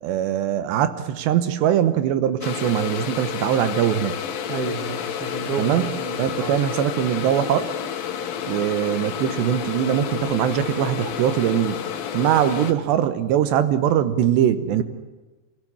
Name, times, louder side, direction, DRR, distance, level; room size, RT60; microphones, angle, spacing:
voice 1, 0.0-4.2 5.6-7.7 8.5-11.8 12.1-14.8, right 10 dB, 80° right, 11 dB, 3.1 m, -22 dB
sound 1, 2.4-12.7, left 8 dB, 65° left, 3.0 m, -30 dB
voice 2, 4.5-6.5, right 5 dB, 45° right, 7 dB, 2.1 m, -31 dB
24.5 x 16.5 x 9.8 m, 1.2 s
omnidirectional pair, 5.0 m